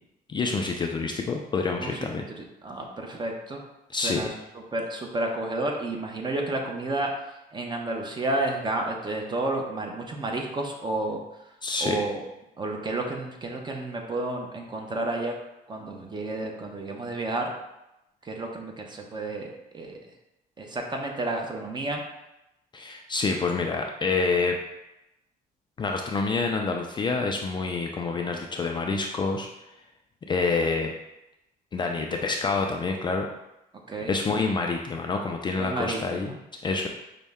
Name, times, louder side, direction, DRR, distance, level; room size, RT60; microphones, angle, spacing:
voice 1, 0.3-2.2 3.9-4.3 11.6-12.0 22.7-24.6 25.8-29.5 30.3-30.9 31.7-33.3 34.1-36.4 36.6-36.9, left 4 dB, 25° left, 2 dB, 0.3 m, -27 dB
voice 2, 2.4-3.6 3.9-4.3 4.7-11.5 11.8-12.2 12.6-15.4 15.7-17.5 18.2-20.0 20.6-22.0 33.9-34.1 35.6-36.3, right 2 dB, 25° right, 1 dB, 0.7 m, -31 dB
5.3 x 2.1 x 3.5 m, 0.90 s
cardioid pair, 110°, 17 cm